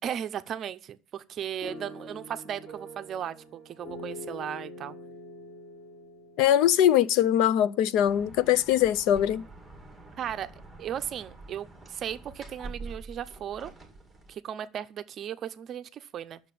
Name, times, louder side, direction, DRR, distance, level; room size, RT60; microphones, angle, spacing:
voice 1, 0.0-5.0 10.2-10.5 10.8-13.7 14.3-16.4, right 9 dB, 35° right, 0.6 m, -36 dB
sound 1, 1.6-7.6, left 1 dB, 35° left, 5.0 m, -45 dB
voice 2, 6.4-9.4, left 11 dB, 65° left, 0.6 m, -22 dB
sound 2, 8.0-14.3, right 2 dB, ahead, 2.0 m, -46 dB
10.0 x 6.6 x 6.9 m
cardioid pair, 170°, 0 cm